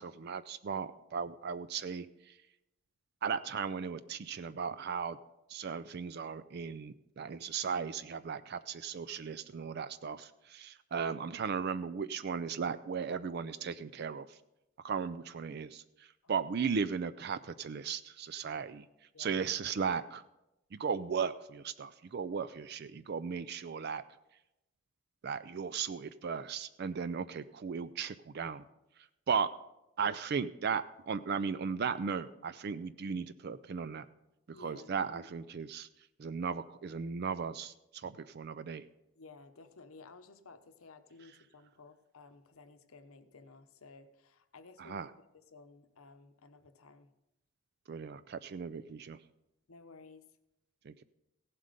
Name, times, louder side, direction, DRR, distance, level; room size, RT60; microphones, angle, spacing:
voice 1, 0.0-2.4 3.2-5.2 5.5-14.4 14.8-18.9 19.2-20.2 20.7-24.0 25.2-28.6 29.3-29.5 30.0-34.1 34.6-35.9 36.2-38.8 44.8-45.1 47.9-49.2 50.8-51.0, right 6 dB, 50° right, 14 dB, 0.4 m, -36 dB
voice 2, 19.1-19.5 34.5-35.0 39.2-45.0 45.3-47.1 49.7-50.2, left 3 dB, 80° left, 9 dB, 0.9 m, -55 dB
16.5 x 7.7 x 5.1 m, 0.92 s
head